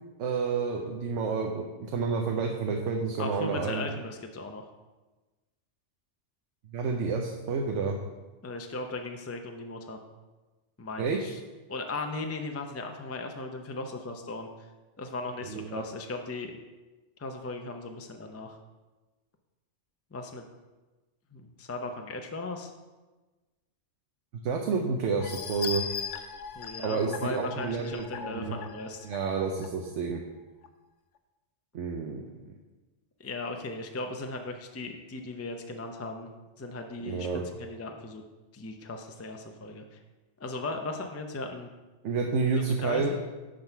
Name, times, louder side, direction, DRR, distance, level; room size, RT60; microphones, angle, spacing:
voice 1, 0.2-3.9 6.7-8.0 11.0-11.2 15.4-15.8 24.4-25.8 26.8-28.5 29.0-30.2 31.7-32.3 37.0-37.4 42.0-43.1, right 5 dB, 85° right, 2 dB, 1.0 m, -29 dB
voice 2, 3.2-4.7 8.4-10.0 10.8-11.4 11.7-14.5 15.0-16.5 17.2-18.6 20.1-20.4 21.3-22.7 26.5-29.1 33.2-36.3 36.6-37.3 37.6-38.2 38.5-40.0 40.4-41.7 42.6-43.1, left 2 dB, 20° left, 4 dB, 0.4 m, -37 dB
sound 1, 25.2-29.7 30.2-30.3 30.6-30.7, left 6 dB, 85° left, 1.0 m, -39 dB
11.5 x 3.9 x 4.5 m, 1.2 s
omnidirectional pair, 1.2 m